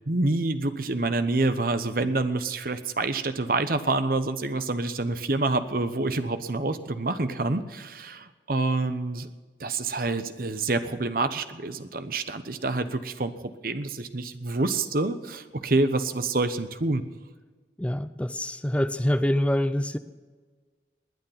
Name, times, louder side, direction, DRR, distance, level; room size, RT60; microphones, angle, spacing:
voice 1, 0.1-9.3 9.6-17.0, right 2 dB, 55° right, 10 dB, 0.9 m, -27 dB
voice 2, 17.8-20.0, left 1 dB, 5° left, 11 dB, 0.5 m, -25 dB
20.0 x 9.5 x 5.8 m, 1.4 s
head